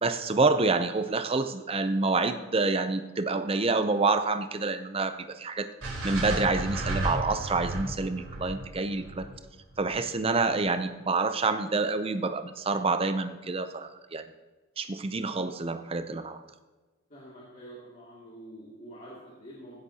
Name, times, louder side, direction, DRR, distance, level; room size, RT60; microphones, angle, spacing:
voice 1, 0.0-5.7 6.0-9.3 9.8-14.2 14.8-16.4, right 3 dB, 25° right, 10 dB, 0.5 m, -27 dB
sound 1, 5.8-10.0, right 1 dB, 80° right, 3.9 m, -33 dB
voice 2, 17.1-19.8, right 1 dB, 40° left, -8 dB, 2.4 m, -47 dB
16.0 x 11.0 x 2.8 m, 1.2 s
head